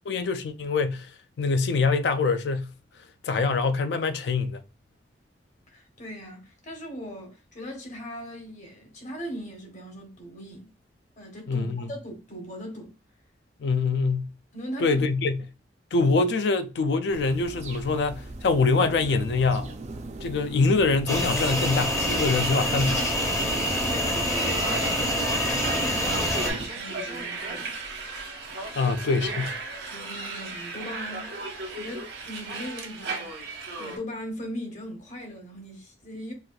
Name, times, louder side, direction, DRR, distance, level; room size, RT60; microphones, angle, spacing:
voice 1, 0.1-1.1 1.4-2.7 3.2-4.6 11.5-11.9 13.6-14.3 14.8-15.5 15.9-19.7 20.2-23.1 28.7-29.5, left 4 dB, 65° left, 0.4 m, -24 dB
voice 2, 5.7-10.7 11.2-13.0 14.5-15.0 23.9-27.7 28.8-29.4 29.9-33.3 33.8-36.3, equal, 45° left, 0.9 m, -39 dB
sound 1, 17.1-26.7, right 2 dB, 40° right, 0.4 m, -39 dB
sound 2, 21.1-26.5, left 1 dB, 15° left, 0.6 m, -26 dB
sound 3, 21.3-34.0, right 3 dB, 80° right, 1.0 m, -36 dB
4.1 x 2.3 x 2.3 m
head